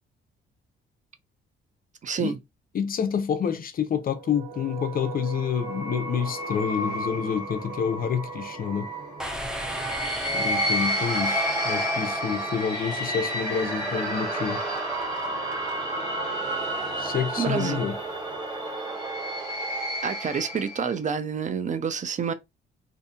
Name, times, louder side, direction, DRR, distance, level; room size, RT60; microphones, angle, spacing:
voice 1, 2.0-2.4 17.4-17.9 20.0-22.3, right 6 dB, 40° right, 0.4 m, -28 dB
voice 2, 2.7-8.9 10.3-14.6 17.0-18.0, left 7 dB, 45° left, 0.5 m, -28 dB
sound 1, 4.1-20.9, right 1 dB, 20° right, 1.8 m, -31 dB
sound 2, 9.2-13.0, equal, 5° right, 0.7 m, -36 dB
sound 3, 12.5-19.8, right 3 dB, 60° right, 1.4 m, -36 dB
2.7 x 2.5 x 2.3 m
cardioid pair, 90°, 20 cm